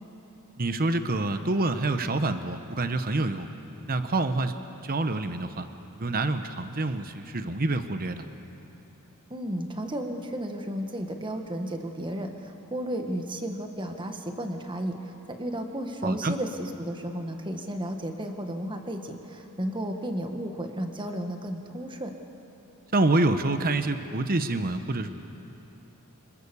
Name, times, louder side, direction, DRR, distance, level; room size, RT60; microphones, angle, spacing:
voice 1, 0.6-3.5 3.8-4.6 4.8-5.7 6.0-8.3 16.0-16.3 22.9-25.1, right 2 dB, 40° right, 9 dB, 0.9 m, -27 dB
voice 2, 9.3-22.1, right 1 dB, 20° right, 5 dB, 1.6 m, -33 dB
26.0 x 23.0 x 7.1 m, 2.9 s
head